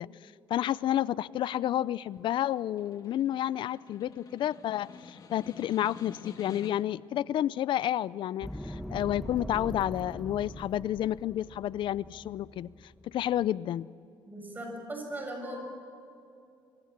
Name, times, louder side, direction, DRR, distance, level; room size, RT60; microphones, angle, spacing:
voice 1, 0.0-12.7 13.0-13.9, left 12 dB, 70° left, 19 dB, 0.5 m, -30 dB
Snare drum, 2.1-7.0, left 5 dB, 50° left, 2.5 m, -49 dB
sound 1, 8.4-13.5, equal, 5° left, 1.2 m, -42 dB
voice 2, 14.3-15.6, right 1 dB, 20° right, 2 dB, 7.1 m, -38 dB
26.0 x 24.0 x 7.5 m, 2.5 s
cardioid pair, 130°, 9 cm